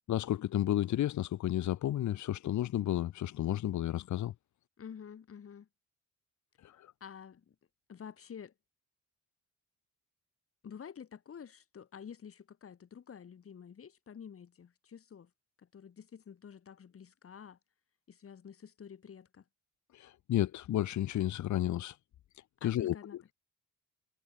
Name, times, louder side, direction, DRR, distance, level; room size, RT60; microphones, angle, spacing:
voice 1, 0.1-4.3 6.6-6.9 19.9-22.0 22.3-23.0, left 12 dB, 70° left, 1.5 m, -32 dB
voice 2, 4.8-5.7 7.0-7.5 7.9-8.5 10.6-15.3 15.6-17.6 18.1-19.4 22.6-23.3, left 7 dB, 50° left, 3.8 m, -49 dB
cardioid pair, 90°, 30 cm